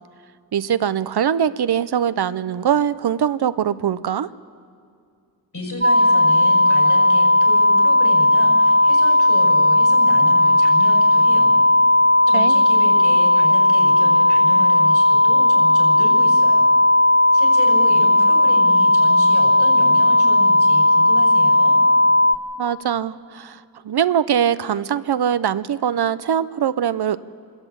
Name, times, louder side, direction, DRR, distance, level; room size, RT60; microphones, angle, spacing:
voice 1, 0.5-4.3 12.3-12.5 22.6-23.6 23.8-27.2, right 9 dB, 85° right, 15 dB, 0.6 m, -22 dB
voice 2, 5.5-11.6 12.3-16.7 17.3-21.7, left 1 dB, 50° left, -1 dB, 6.9 m, -32 dB
sound 1, 5.8-22.3, left 1 dB, 30° right, 1.0 m, -15 dB
25.5 x 13.5 x 8.5 m, 2.3 s
cardioid pair, 50°, 38 cm